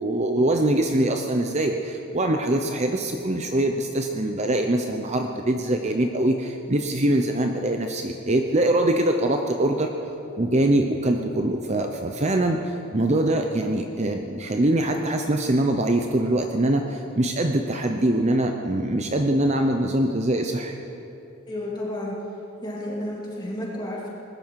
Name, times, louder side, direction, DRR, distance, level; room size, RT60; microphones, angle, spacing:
voice 1, 0.0-9.9 10.4-20.7, right 1 dB, 30° right, 4 dB, 0.7 m, -23 dB
voice 2, 21.5-22.2 22.6-24.1, left 1 dB, 20° left, -4 dB, 2.9 m, -31 dB
20.0 x 13.0 x 4.7 m, 2.8 s
head